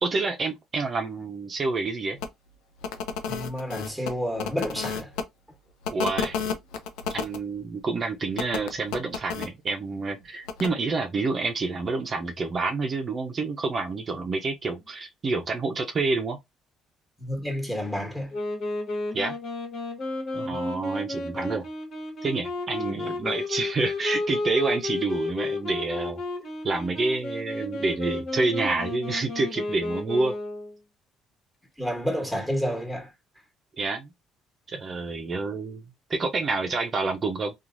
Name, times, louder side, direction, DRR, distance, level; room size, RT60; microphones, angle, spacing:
voice 1, 0.0-2.2 5.9-6.4 7.1-16.4 19.1-19.4 20.3-21.7 22.2-26.2 26.6-30.3 33.8-34.1 34.7-35.8 36.1-37.5, right 3 dB, 40° right, 0.6 m, -28 dB
sound 1, 2.2-2.3 2.8-5.2 5.8-7.4 8.3-9.5 10.5-10.7, left 6 dB, 85° left, 0.5 m, -31 dB
voice 2, 3.3-5.1 17.2-18.4 20.3-20.6 31.8-33.1, equal, 5° left, 1.4 m, -30 dB
Wind instrument woodwind instrument, 18.3-30.8, left 2 dB, 60° left, 1.3 m, -32 dB
3.0 x 2.4 x 2.5 m
supercardioid pair, 75°, 0 cm